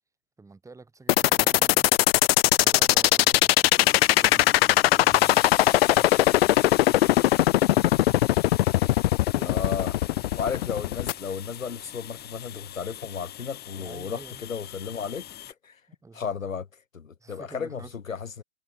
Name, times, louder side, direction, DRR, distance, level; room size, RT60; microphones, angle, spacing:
voice 1, 0.4-1.9 2.6-8.6 9.3-10.3 13.8-14.4 15.9-16.3 17.2-18.0, right 3 dB, 10° right, 6.2 m, -50 dB
sound 1, 1.1-11.1, left 15 dB, 50° left, 0.5 m, -20 dB
sound 2, 3.8-15.5, left 12 dB, 25° left, 5.5 m, -40 dB
voice 2, 9.4-9.9 10.4-15.2 15.6-15.8 16.1-18.4, left 6 dB, 90° left, 3.3 m, -34 dB
hypercardioid pair, 125°, 39 cm